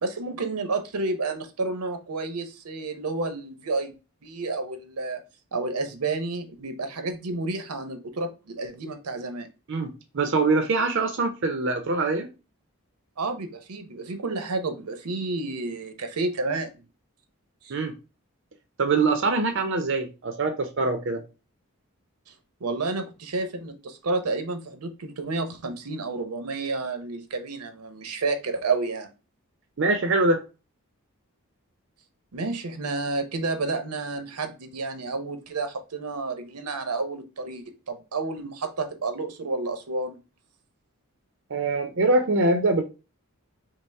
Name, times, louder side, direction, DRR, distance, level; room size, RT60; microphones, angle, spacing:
voice 1, 0.0-3.9 4.2-5.2 5.5-9.5 13.2-16.7 17.6-17.8 22.6-29.1 32.3-40.2, right 3 dB, 90° right, 0.7 m, -30 dB
voice 2, 9.7-12.3 17.7-18.0 18.8-21.2 29.8-30.4 41.5-42.8, right 3 dB, 55° right, 0.5 m, -23 dB
5.2 x 2.0 x 3.3 m
head